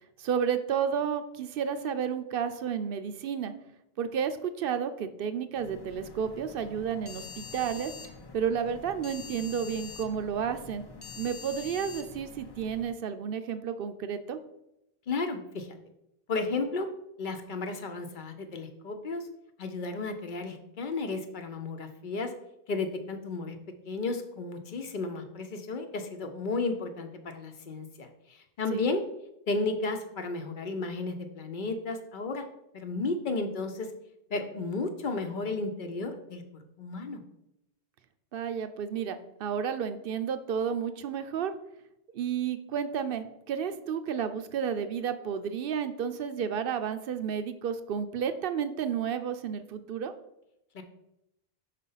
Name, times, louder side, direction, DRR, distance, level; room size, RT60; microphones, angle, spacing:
voice 1, 0.2-3.5 4.0-7.9 8.3-10.8 11.2-14.4 28.7-28.8 38.3-41.5 42.1-50.1, right 7 dB, 65° right, 10 dB, 0.7 m, -31 dB
sound 1, 5.6-12.9, left 5 dB, 30° left, 0.5 m, -45 dB
voice 2, 15.1-15.7 16.3-16.9 17.2-19.3 19.6-22.3 22.7-23.6 23.8-29.0 29.5-32.5 32.7-33.9 34.3-37.2 50.7-50.8, left 3 dB, 55° left, 6 dB, 0.8 m, -33 dB
5.4 x 4.1 x 5.5 m, 0.83 s
omnidirectional pair, 1.0 m